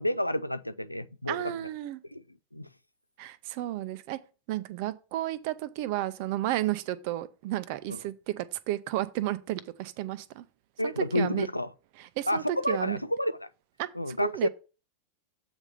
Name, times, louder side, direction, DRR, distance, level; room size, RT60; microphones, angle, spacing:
voice 1, 0.0-1.5 2.1-2.2 2.5-2.7 7.9-8.0 10.8-11.7 12.3-13.5 13.9-14.5, left 1 dB, 85° left, 0.4 m, -30 dB
voice 2, 1.3-2.0 3.2-4.2 4.5-10.4 10.8-11.5 12.2-13.0 13.8-13.9 14.2-14.5, right 14 dB, 45° right, 0.6 m, -32 dB
8.1 x 3.5 x 6.6 m
figure-of-eight pair, 90°, 0 cm